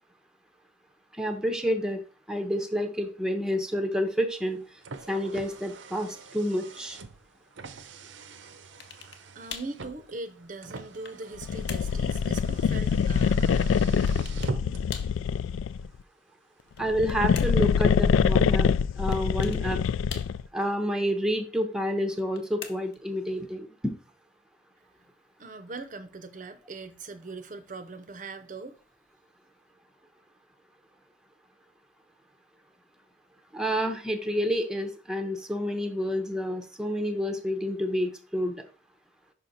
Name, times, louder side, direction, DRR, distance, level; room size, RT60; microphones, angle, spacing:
voice 1, 1.2-2.0 2.3-4.6 5.1-7.0 16.8-18.7 19.0-19.8 20.5-23.9 33.5-38.6, equal, 5° right, 0.7 m, -29 dB
Car, 4.4-15.0, right 3 dB, 75° right, 0.7 m, -43 dB
sound 1, 8.8-9.3 9.5-9.8 10.4-11.3 11.7-12.0 14.1-14.6 14.9-15.2 16.6-17.7 19.1-19.7 20.1-20.6 22.1-23.1, left 7 dB, 60° left, 0.9 m, -43 dB
voice 2, 9.3-13.9 25.0-25.1 25.4-28.8, right 3 dB, 40° right, 0.6 m, -41 dB
sound 2, 11.4-15.9 16.8-20.5, left 6 dB, 85° left, 0.3 m, -25 dB
5.7 x 5.5 x 3.9 m
head